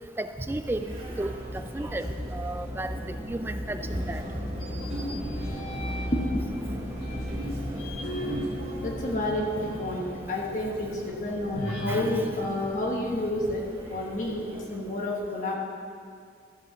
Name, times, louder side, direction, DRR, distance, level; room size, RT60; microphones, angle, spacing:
voice 1, 0.2-2.1 2.3-3.0 3.3-4.2 11.9-12.0, right 1 dB, 10° right, 8 dB, 0.3 m, -33 dB
sound 1, 0.6-14.6, equal, 35° right, 1.8 m, -36 dB
sound 2, 4.5-6.4 7.0-10.0 10.3-10.4 11.5-13.6, equal, 60° left, 2.2 m, -36 dB
voice 2, 6.1-6.4 8.5-15.6, left 1 dB, 40° left, -2 dB, 1.2 m, -30 dB
13.0 x 5.5 x 7.0 m, 2.3 s
head